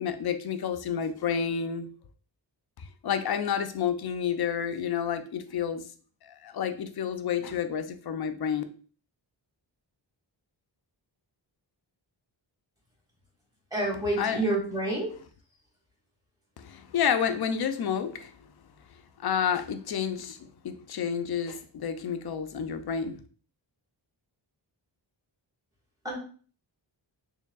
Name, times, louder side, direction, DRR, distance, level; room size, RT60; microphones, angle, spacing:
voice 1, 0.0-1.9 2.8-5.8 6.3-8.6 14.2-14.4 16.6-18.3 19.2-20.4 20.6-23.2, left 7 dB, 60° left, 9 dB, 0.5 m, -30 dB
voice 2, 13.7-15.1 26.0-26.2, right 2 dB, 10° right, -3 dB, 1.5 m, -28 dB
4.5 x 3.3 x 2.3 m, 0.41 s
wide cardioid pair, 145°, 44 cm